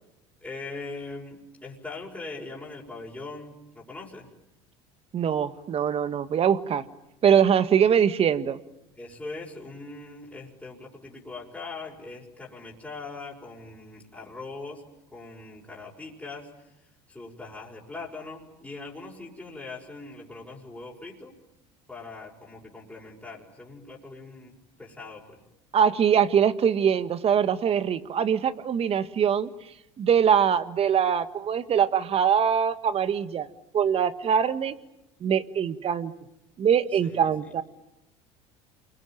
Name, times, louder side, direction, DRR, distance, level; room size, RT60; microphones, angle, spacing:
voice 1, 0.4-4.3 9.0-14.8 15.1-16.5 17.1-21.4 21.9-24.5 24.8-25.4 37.0-37.5, left 3 dB, 10° left, -4 dB, 6.1 m, -41 dB
voice 2, 5.1-6.8 7.2-8.6 25.7-29.5 30.0-33.5 33.7-34.7 35.2-36.1 36.6-37.6, right 8 dB, 40° right, 12 dB, 1.7 m, -23 dB
28.5 x 23.0 x 9.1 m, 0.87 s
supercardioid pair, 90°, 15 cm